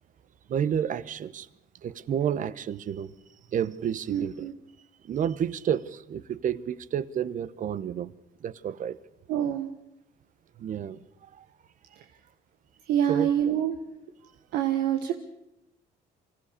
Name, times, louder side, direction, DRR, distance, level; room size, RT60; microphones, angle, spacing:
voice 1, 0.5-1.5 1.8-3.1 3.5-4.5 5.0-8.1 8.4-9.0 10.6-11.0 11.4-11.5 13.1-13.3, right 9 dB, 50° right, 1.0 m, -30 dB
voice 2, 4.1-4.5 9.3-9.7 12.9-13.8 14.5-15.1, right 10 dB, 85° right, 1.5 m, -26 dB
24.5 x 16.0 x 6.7 m
cardioid pair, 110°, 17 cm